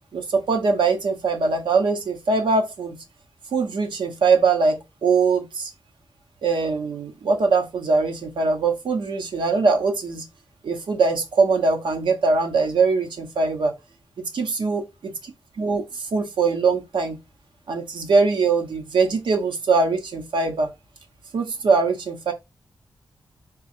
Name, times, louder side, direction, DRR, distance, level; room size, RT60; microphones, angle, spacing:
voice 1, 0.1-3.0 3.5-5.7 6.4-10.2 10.6-13.7 14.2-14.8 15.6-17.2 17.7-20.7 21.3-22.3, right 4 dB, 85° right, 1.1 m, -22 dB
3.7 x 2.4 x 4.4 m
wide cardioid pair, 160°, 8 cm